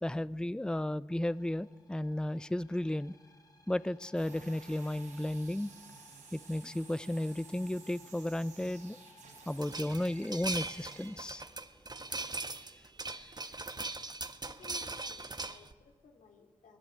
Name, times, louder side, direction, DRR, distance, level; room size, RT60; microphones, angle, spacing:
voice 1, 0.0-3.1 3.7-5.7 6.3-9.0 9.5-11.4, left 1 dB, 5° left, 18 dB, 0.6 m, -34 dB
sound 1, 1.1-11.9, left 2 dB, 30° left, 3.0 m, -61 dB
sound 2, 4.1-11.1, right 5 dB, 90° right, 6.1 m, -54 dB
sound 3, 9.6-15.7, right 3 dB, 35° right, 1.5 m, -40 dB
voice 2, 14.1-16.8, left 5 dB, 90° left, 5 dB, 3.1 m, -57 dB
24.0 x 18.5 x 9.4 m, 1.4 s
cardioid pair, 60°, 13 cm